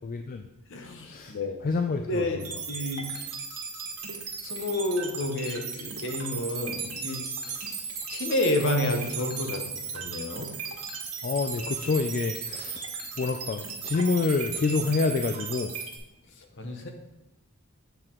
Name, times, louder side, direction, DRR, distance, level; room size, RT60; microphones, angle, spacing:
voice 1, 0.0-0.4 1.0-1.3 1.6-2.4 11.2-12.8 13.2-15.7, left 4 dB, 40° left, 6 dB, 0.3 m, -27 dB
voice 2, 0.7-1.6 2.1-3.2 4.4-7.2 7.6-10.5 16.6-16.9, left 1 dB, 55° left, 4 dB, 0.9 m, -30 dB
sound 1, 2.4-16.0, right 5 dB, 90° right, 1.4 m, -36 dB
7.8 x 4.5 x 3.8 m, 0.94 s
head